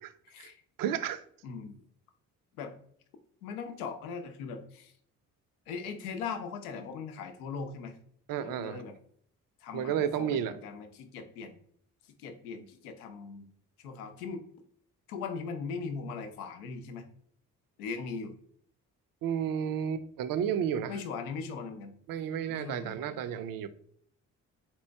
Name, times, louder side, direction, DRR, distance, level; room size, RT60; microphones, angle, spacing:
voice 1, 0.2-0.6 1.4-1.8 2.5-2.7 3.4-4.9 5.7-8.0 8.4-9.0 9.6-11.6 12.0-13.4 13.8-14.4 15.1-17.0 17.8-18.3 20.9-21.9 22.5-23.0, left 5 dB, 80° left, 0.6 m, -39 dB
voice 2, 0.8-1.2 8.3-8.8 9.7-10.5 19.2-20.9 22.1-23.7, right 8 dB, 50° right, 0.5 m, -32 dB
4.1 x 3.0 x 3.3 m
hypercardioid pair, 40°, 43 cm